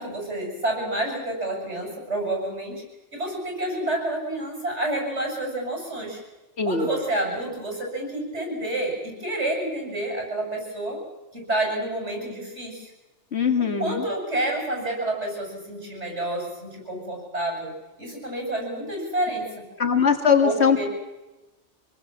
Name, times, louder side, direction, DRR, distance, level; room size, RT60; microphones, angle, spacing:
voice 1, 0.0-2.8 3.1-6.2 6.6-11.0 11.3-12.9 13.6-17.7 18.0-19.5 20.4-20.9, right 1 dB, 75° right, 1 dB, 7.5 m, -29 dB
voice 2, 13.3-14.1 19.8-20.8, left 6 dB, 65° left, 6 dB, 2.5 m, -21 dB
26.0 x 19.5 x 7.4 m, 1.1 s
omnidirectional pair, 1.2 m